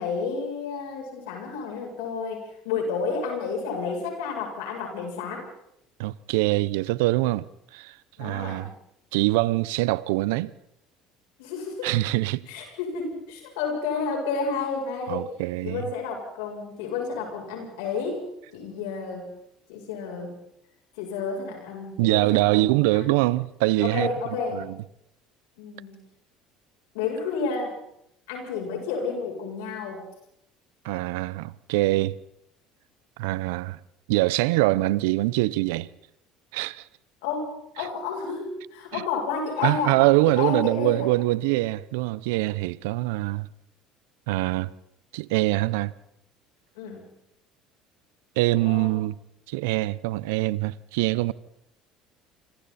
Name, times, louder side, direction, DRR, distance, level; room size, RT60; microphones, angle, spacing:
voice 1, 0.0-5.5 8.2-8.7 11.4-11.9 12.5-15.2 15.6-18.3 18.5-19.3 19.7-20.3 21.0-23.1 23.8-24.7 25.6-26.0 26.9-27.7 28.3-30.0 37.2-40.0 40.3-41.1 46.8-47.1 48.6-49.0, left 5 dB, 80° left, 7.8 m, -31 dB
voice 2, 6.0-7.5 7.7-8.7 9.1-10.5 11.8-12.4 15.1-15.8 22.0-24.1 24.5-24.8 30.8-32.2 33.2-33.8 34.1-35.9 36.5-36.8 38.9-39.0 39.6-43.5 44.3-44.7 45.1-45.9 48.4-49.2 49.5-51.3, right 19 dB, 80° right, 0.7 m, -24 dB
28.0 x 25.5 x 4.3 m
supercardioid pair, 80°, 0 cm